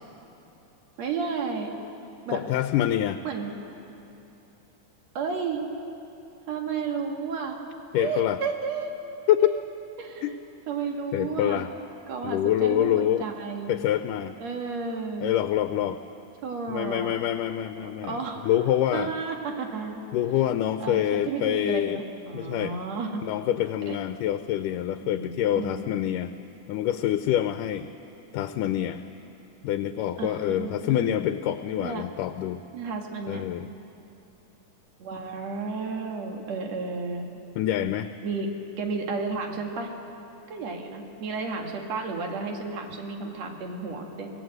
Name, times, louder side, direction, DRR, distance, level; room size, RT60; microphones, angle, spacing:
voice 1, 1.0-1.7 2.3-2.4 3.2-3.5 5.1-5.6 6.5-7.6 8.0-8.9 9.4-9.6 10.0-10.4 10.7-11.7 12.1-13.8 14.4-15.3 16.4-17.2 17.8-18.5 18.9-20.0 20.8-23.2 23.9-24.0 25.0-25.9 30.2-31.2 31.8-32.0 32.7-33.5 35.0-37.3 38.2-38.5 38.8-39.9 40.5-44.3, right 4 dB, 60° right, 2 dB, 2.9 m, -32 dB
voice 2, 2.3-3.2 7.9-8.4 9.3-9.5 10.2-10.3 11.1-11.7 12.2-13.3 13.7-14.3 15.2-16.0 16.7-19.1 20.1-22.0 22.3-22.7 23.2-26.3 26.7-27.9 28.3-29.0 29.6-32.6 33.3-33.7 37.6-38.1, left 12 dB, 85° left, 10 dB, 2.2 m, -26 dB
25.5 x 17.5 x 7.9 m, 2.9 s
omnidirectional pair, 3.6 m